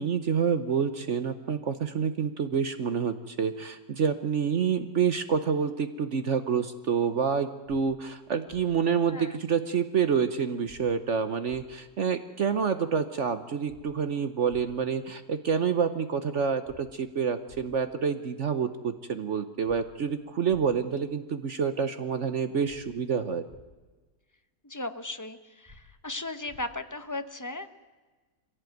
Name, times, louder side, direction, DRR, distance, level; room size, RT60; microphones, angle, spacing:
voice 1, 0.0-23.5, right 6 dB, 55° right, 10 dB, 1.1 m, -28 dB
sound 1, 7.7-7.8 8.5-8.6 10.7-10.8 11.5-11.6 13.7-13.8 14.5-14.6 16.7-16.8 17.5-17.6 19.7-19.8 20.5-20.6 22.7-22.8 23.5-23.6 25.7-25.8 26.5-26.6, equal, 10° right, 5.0 m, -52 dB
voice 2, 24.6-27.7, left 2 dB, 15° left, 9 dB, 0.8 m, -36 dB
23.0 x 16.5 x 9.3 m, 1.3 s
omnidirectional pair, 1.6 m